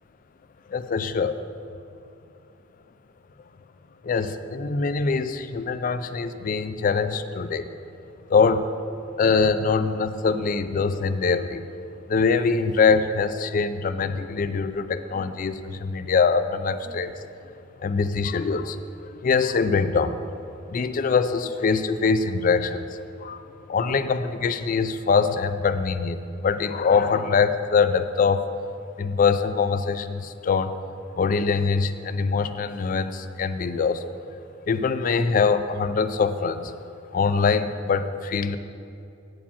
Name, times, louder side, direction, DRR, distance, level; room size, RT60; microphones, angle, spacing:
voice 1, 0.7-1.4 4.0-7.7 8.3-8.7 9.2-11.6 12.1-17.2 17.8-20.2 20.7-23.4 23.7-28.5 29.0-30.7 31.2-34.0 34.7-36.7 37.1-38.6, left 5 dB, 45° left, 11 dB, 0.4 m, -23 dB
8.4 x 4.8 x 7.1 m, 2.6 s
head